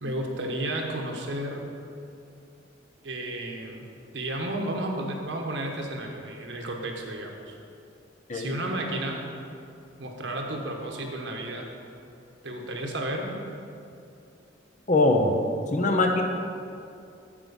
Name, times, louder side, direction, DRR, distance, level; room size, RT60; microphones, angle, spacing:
voice 1, 0.0-1.6 3.0-3.8 4.1-7.6 8.3-9.3 10.0-11.7 12.4-13.4, right 1 dB, 65° right, 1 dB, 1.3 m, -32 dB
voice 2, 14.9-15.4 15.7-16.2, left 2 dB, 40° left, 3 dB, 0.9 m, -22 dB
8.8 x 7.7 x 5.4 m, 2.5 s
head